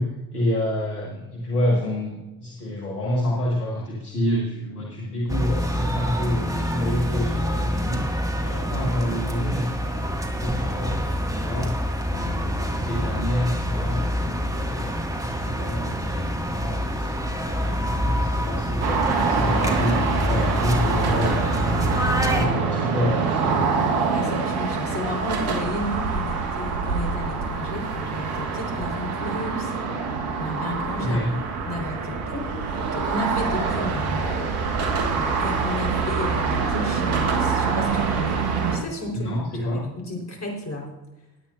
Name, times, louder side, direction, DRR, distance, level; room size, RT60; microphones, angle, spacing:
voice 1, 0.0-8.0 8.4-11.8 12.2-14.9 15.2-18.9 19.3-22.0 22.3-23.9 31.0-31.3 39.1-39.8, left 1 dB, 80° left, -3 dB, 2.0 m, -28 dB
sound 1, 5.3-22.5, equal, 10° right, 2.1 m, -26 dB
sound 2, 18.8-38.8, right 5 dB, 75° right, 1.7 m, -25 dB
voice 2, 22.2-22.6 24.1-29.8 30.4-31.2 31.6-34.4 35.1-38.4 38.7-39.3 39.7-40.9, left 1 dB, 35° left, 1 dB, 4.5 m, -33 dB
19.5 x 9.3 x 2.7 m, 1.0 s
hypercardioid pair, 50°, 43 cm